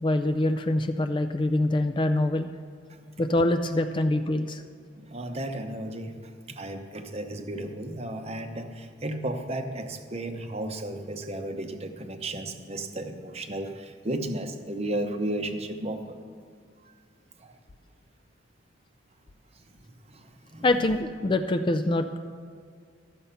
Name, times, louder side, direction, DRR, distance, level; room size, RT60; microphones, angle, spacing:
voice 1, 0.0-2.5 3.2-4.6 20.6-22.2, left 1 dB, 25° left, 8 dB, 0.3 m, -25 dB
voice 2, 4.9-16.2 16.9-17.0 17.4-17.6 19.6-19.7 20.1-20.7, right 1 dB, 30° right, 6 dB, 0.7 m, -34 dB
12.5 x 7.0 x 5.6 m, 2.2 s
head